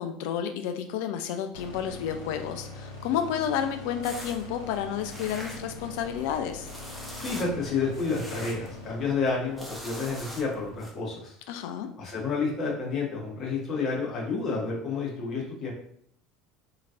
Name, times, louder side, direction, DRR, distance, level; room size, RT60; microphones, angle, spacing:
voice 1, 0.0-6.7 11.5-11.9, left 8 dB, 65° left, 7 dB, 0.4 m, -31 dB
sound 1, 1.5-10.7, left 2 dB, 80° left, 0.9 m, -43 dB
sound 2, 4.0-10.9, equal, 5° right, 0.9 m, -44 dB
voice 2, 7.1-11.3 12.0-15.7, left 4 dB, 45° left, -3 dB, 1.4 m, -30 dB
2.9 x 2.8 x 2.4 m, 0.63 s
hypercardioid pair, 70°, 0 cm